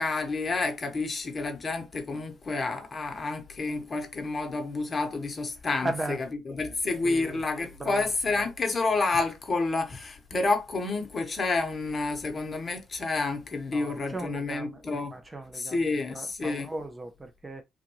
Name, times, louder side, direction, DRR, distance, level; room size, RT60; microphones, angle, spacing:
voice 1, 0.0-5.9 6.5-15.1 15.5-16.7, left 3 dB, 35° left, 1.0 m, -29 dB
voice 2, 5.8-6.2 7.0-7.4 7.8-8.1 8.3-8.5 13.7-17.6, right 2 dB, 20° right, 0.5 m, -37 dB
3.5 x 2.5 x 2.9 m
cardioid pair, 90°, 0 cm